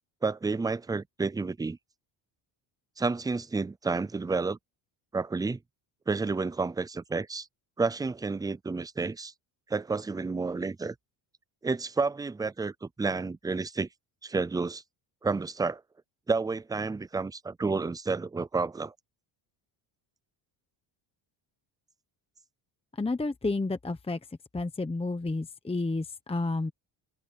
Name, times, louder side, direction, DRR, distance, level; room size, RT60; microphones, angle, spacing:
voice 1, 0.2-1.8 3.0-4.6 5.1-5.6 6.1-7.5 7.8-9.3 9.7-10.9 11.6-13.9 14.2-14.8 15.2-15.8 16.3-18.9, right 4 dB, 10° right, 0.3 m, -30 dB
voice 2, 23.0-24.2 24.5-26.7, left 3 dB, 10° left, 1.1 m, -30 dB
open air
cardioid pair, 120°, 49 cm